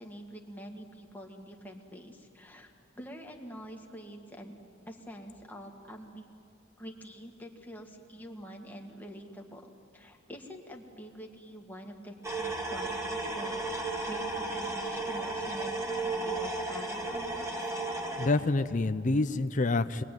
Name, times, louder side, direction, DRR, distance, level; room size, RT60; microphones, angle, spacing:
voice 1, 0.0-4.5 4.9-6.3 6.8-17.5, equal, 10° left, 1 dB, 2.0 m, -46 dB
sound 1, 12.2-18.3, right 2 dB, 15° right, 2.4 m, -34 dB
voice 2, 18.2-20.0, left 2 dB, 40° left, 10 dB, 0.6 m, -27 dB
24.5 x 21.5 x 9.2 m, 2.5 s
head